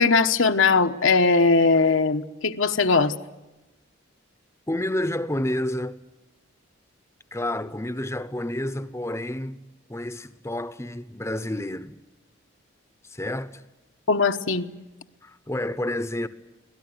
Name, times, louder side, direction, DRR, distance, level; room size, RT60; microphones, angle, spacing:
voice 1, 0.0-3.1 14.1-14.7, left 4 dB, 70° left, 1.1 m, -20 dB
voice 2, 4.7-6.0 7.3-9.6 9.9-12.0 13.0-13.6 15.2-16.3, left 1 dB, 15° left, 0.8 m, -29 dB
24.5 x 18.0 x 9.6 m
head